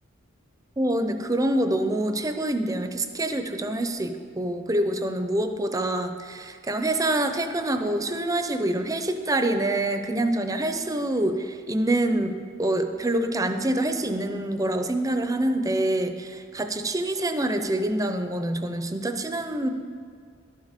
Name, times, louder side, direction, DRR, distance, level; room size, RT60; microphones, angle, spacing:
voice 1, 0.8-19.7, right 1 dB, 15° right, 7 dB, 0.6 m, -26 dB
12.0 x 7.4 x 5.1 m, 2.2 s
head